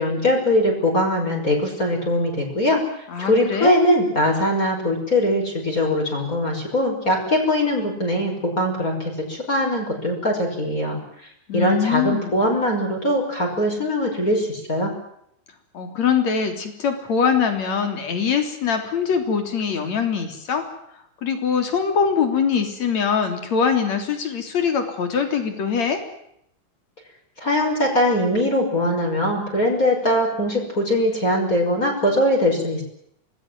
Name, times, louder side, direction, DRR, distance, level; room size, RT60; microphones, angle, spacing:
voice 1, 0.0-2.8 3.2-11.0 11.5-14.9 27.4-32.8, left 1 dB, 25° left, 0 dB, 6.0 m, -21 dB
voice 2, 3.1-3.7 11.5-12.4 15.7-20.7 21.2-26.0, left 6 dB, 65° left, 6 dB, 4.7 m, -22 dB
26.0 x 20.0 x 7.8 m, 0.74 s
omnidirectional pair, 3.3 m